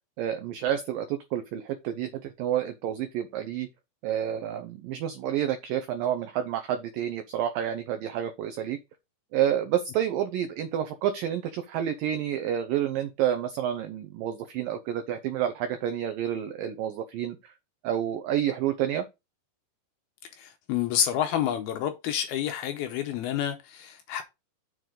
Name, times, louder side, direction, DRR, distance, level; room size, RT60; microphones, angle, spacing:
voice 1, 0.2-3.7 4.0-8.8 9.3-17.5 17.8-19.1, right 10 dB, 85° right, 2.0 m, -29 dB
voice 2, 20.4-24.2, left 10 dB, 80° left, 2.3 m, -29 dB
7.2 x 6.3 x 3.7 m
omnidirectional pair, 5.0 m